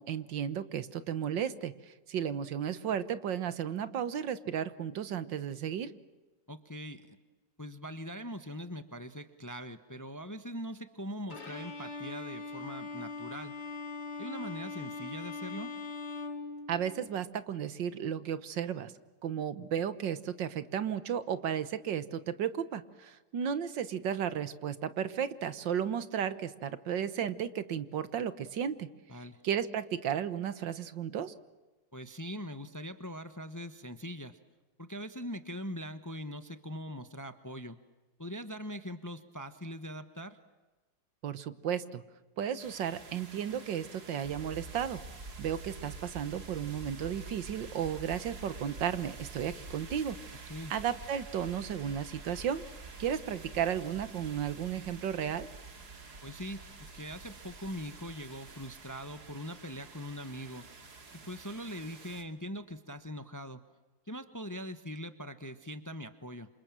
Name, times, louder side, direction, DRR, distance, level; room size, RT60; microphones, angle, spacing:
voice 1, 0.0-5.9 16.7-18.9 19.2-28.9 29.1-31.3 41.2-42.0 42.4-45.0 45.4-50.5 50.7-52.7 53.0-55.5, right 8 dB, 80° right, 13 dB, 1.8 m, -34 dB
voice 2, 6.5-7.2 7.6-13.5 14.2-15.7 29.1-29.4 31.9-34.4 34.8-37.8 38.2-40.4 50.5-50.7 56.2-60.6 61.3-63.6 64.1-66.5, equal, 15° left, 10 dB, 0.9 m, -42 dB
Bowed string instrument, 11.3-17.2, left 4 dB, 90° left, 3.3 m, -41 dB
sound 1, 42.6-62.2, right 4 dB, 60° right, 3.0 m, -51 dB
sound 2, 44.2-59.9, right 3 dB, 40° right, 1.7 m, -49 dB
28.5 x 27.0 x 7.6 m, 1.2 s
omnidirectional pair, 2.0 m